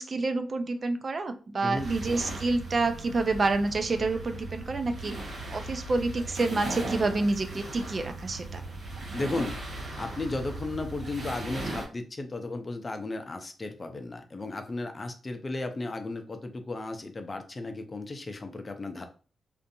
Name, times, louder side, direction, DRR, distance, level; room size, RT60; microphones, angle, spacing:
voice 1, 0.0-5.1 5.5-8.6, right 3 dB, 45° right, 8 dB, 0.4 m, -28 dB
sound 1, 1.7-11.9, right 2 dB, 65° right, 0.9 m, -38 dB
voice 2, 9.1-9.6 10.0-19.0, left 2 dB, 35° left, 6 dB, 0.5 m, -34 dB
2.5 x 2.5 x 2.6 m, 0.38 s
cardioid pair, 60°, 0 cm